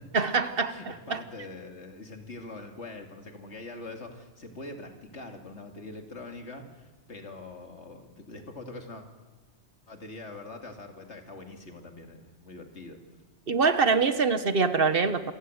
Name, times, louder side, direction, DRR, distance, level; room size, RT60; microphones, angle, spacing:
voice 1, 0.1-1.2 13.5-15.2, right 4 dB, 55° right, 11 dB, 1.3 m, -24 dB
voice 2, 0.7-9.1 9.9-13.0, left 2 dB, 75° left, 4 dB, 2.8 m, -43 dB
27.0 x 16.5 x 8.0 m, 1.2 s
omnidirectional pair, 1.2 m